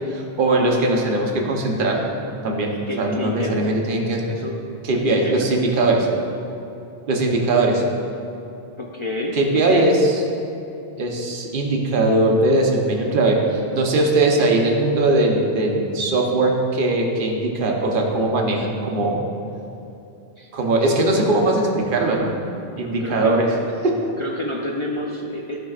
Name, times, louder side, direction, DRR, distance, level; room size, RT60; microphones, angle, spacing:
voice 1, 0.1-2.0 2.4-4.2 4.8-6.1 7.1-7.8 9.3-10.2 11.0-19.2 20.5-22.3 22.8-23.5 23.8-24.0, right 2 dB, 55° right, 0 dB, 1.0 m, -20 dB
voice 2, 2.9-3.7 4.2-4.6 4.9-5.5 8.8-9.9 20.4-20.5 20.8-21.6 22.8-23.4 24.2-25.6, left 1 dB, 45° left, -2 dB, 0.4 m, -30 dB
12.0 x 5.6 x 2.4 m, 2.8 s
omnidirectional pair, 1.1 m